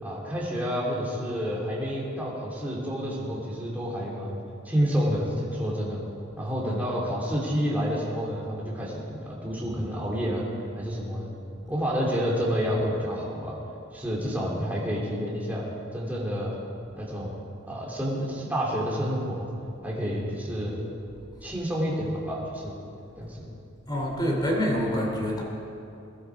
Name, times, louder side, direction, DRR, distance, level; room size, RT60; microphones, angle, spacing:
voice 1, 0.0-6.0 6.4-10.4 10.8-11.3 11.7-13.6 13.9-15.6 15.9-16.5 17.0-17.3 17.7-19.5 19.8-20.8 21.4-22.8 23.2-23.5, equal, 10° right, -5 dB, 3.0 m, -29 dB
voice 2, 23.9-25.4, equal, 20° left, -1 dB, 3.0 m, -26 dB
21.5 x 12.0 x 4.8 m, 2.7 s
head